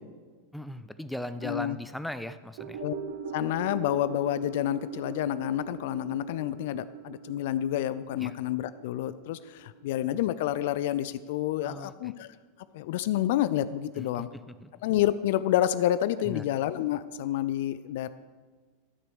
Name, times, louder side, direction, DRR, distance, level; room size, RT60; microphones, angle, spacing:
voice 1, 0.5-2.8 8.2-8.3 11.6-12.1 14.0-14.7 16.2-16.4, left 1 dB, 5° left, 12 dB, 0.5 m, -38 dB
voice 2, 1.4-1.8 2.8-2.9 3.3-12.3 12.7-14.3 14.8-18.1, left 12 dB, 60° left, 15 dB, 0.4 m, -29 dB
sound 1, 2.6-11.0 11.3-11.4, right 7 dB, 60° right, 1.1 m, -41 dB
12.0 x 5.9 x 6.4 m, 1.5 s
figure-of-eight pair, 90°, 0 cm